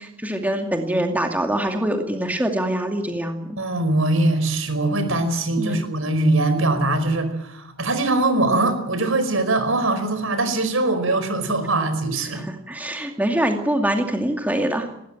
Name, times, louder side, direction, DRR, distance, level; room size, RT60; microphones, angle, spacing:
voice 1, 0.0-3.6 5.6-5.9 12.3-14.9, right 1 dB, 10° right, 3 dB, 2.3 m, -24 dB
voice 2, 3.6-12.4, right 2 dB, 75° right, 9 dB, 4.9 m, -22 dB
19.5 x 19.0 x 8.9 m, 0.79 s
head